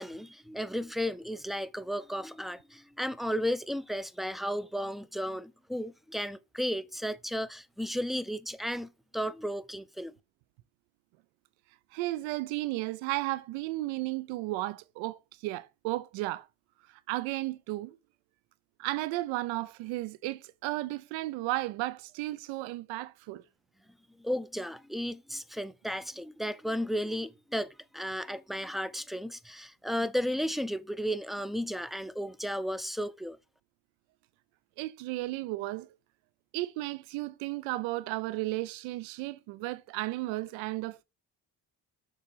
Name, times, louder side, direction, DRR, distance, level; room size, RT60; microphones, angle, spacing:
voice 1, 0.0-10.1 24.2-33.4, equal, ahead, 0.6 m, -34 dB
voice 2, 11.9-16.5 16.9-18.0 18.8-23.4 34.8-35.9 36.5-41.0, right 18 dB, 90° right, 0.5 m, -34 dB
6.8 x 4.3 x 5.6 m
supercardioid pair, 50°, 45 cm